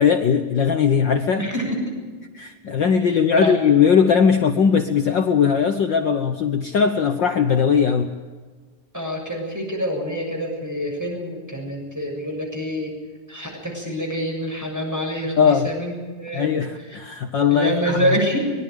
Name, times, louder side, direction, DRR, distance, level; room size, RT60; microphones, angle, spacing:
voice 1, 0.0-1.5 2.4-8.1 15.4-15.7 16.3-18.2, left 7 dB, 80° left, 6 dB, 1.0 m, -19 dB
voice 2, 1.4-2.0 3.0-3.5 8.9-12.9 13.3-17.0 17.5-18.6, equal, 5° right, 1 dB, 7.2 m, -26 dB
24.5 x 21.5 x 5.2 m, 1.4 s
omnidirectional pair, 3.5 m